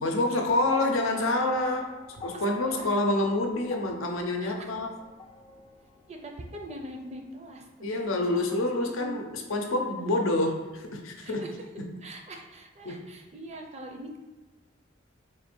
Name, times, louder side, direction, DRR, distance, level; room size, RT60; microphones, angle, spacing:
voice 1, 0.0-4.9 7.8-11.4 11.8-11.9 12.8-13.1, left 2 dB, 80° left, 3 dB, 0.7 m, -27 dB
sound 1, 0.7-9.0 10.1-10.2, left 3 dB, 25° left, 0.4 m, -47 dB
voice 2, 2.3-2.9 4.4-4.7 6.1-7.7 8.1-8.6 9.0-9.2 11.2-11.5 12.0-14.2, right 1 dB, 35° right, 2 dB, 0.5 m, -42 dB
3.8 x 2.6 x 4.3 m, 1.2 s
head